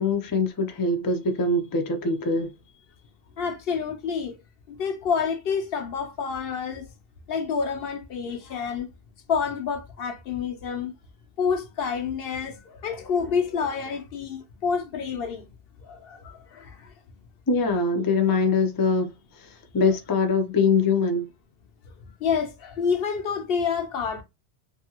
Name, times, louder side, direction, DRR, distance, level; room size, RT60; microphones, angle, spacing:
voice 1, 0.0-2.5 17.5-19.1 19.7-21.3, left 4 dB, 35° left, 0.4 m, -23 dB
voice 2, 3.4-4.4 4.7-6.9 7.3-8.9 9.3-10.9 11.4-15.5 15.8-16.9 22.2-24.2, left 6 dB, 70° left, 0.8 m, -28 dB
2.7 x 2.5 x 2.8 m
omnidirectional pair, 1.0 m